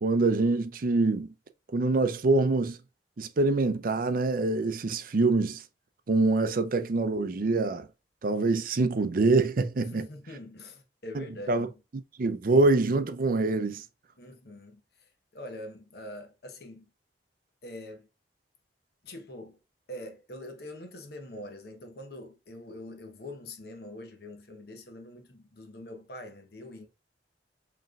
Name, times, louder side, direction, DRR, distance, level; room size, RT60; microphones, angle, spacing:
voice 1, 0.0-1.3 1.7-2.8 3.2-5.6 6.1-7.9 8.2-10.1 11.1-11.7 12.2-13.8, right 3 dB, 50° right, 0.5 m, -25 dB
voice 2, 9.8-11.7 14.2-16.9 17.6-18.1 19.0-19.6 19.9-26.9, left 1 dB, 60° left, 0.9 m, -44 dB
5.0 x 3.1 x 2.3 m
head